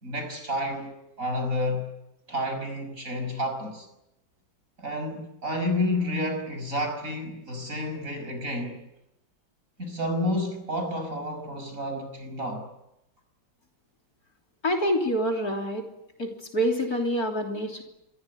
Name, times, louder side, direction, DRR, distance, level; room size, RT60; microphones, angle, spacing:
voice 1, 0.0-1.9 2.3-3.9 4.8-8.8 9.8-12.7, left 1 dB, 40° right, 6.5 m, -30 dB
voice 2, 14.6-15.9 16.2-17.8, equal, 50° left, 3.8 m, -26 dB
26.5 x 22.5 x 9.7 m
omnidirectional pair, 2.1 m